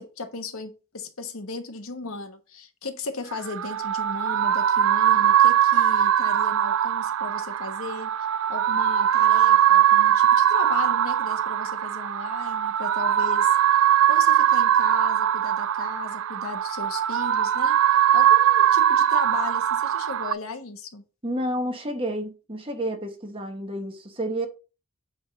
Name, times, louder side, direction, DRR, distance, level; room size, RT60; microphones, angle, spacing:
voice 1, 0.0-8.1 8.5-13.6 14.1-17.8 18.1-21.0, left 3 dB, 75° left, 1.3 m, -36 dB
sound 1, 3.3-20.3, right 10 dB, 70° right, 0.3 m, -21 dB
voice 2, 21.2-24.5, right 1 dB, 25° right, 1.2 m, -30 dB
8.7 x 3.7 x 4.2 m
head